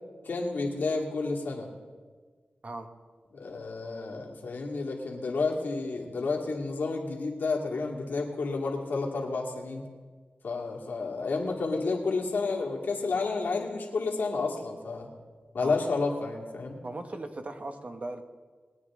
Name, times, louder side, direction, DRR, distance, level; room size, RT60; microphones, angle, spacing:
voice 1, 0.2-1.7 3.3-9.8 10.4-15.1 15.5-16.8, left 3 dB, 80° left, -1 dB, 2.2 m, -31 dB
voice 2, 16.8-18.2, right 2 dB, 45° right, 7 dB, 1.1 m, -38 dB
21.0 x 9.2 x 3.7 m, 1.5 s
wide cardioid pair, 75°, 3 cm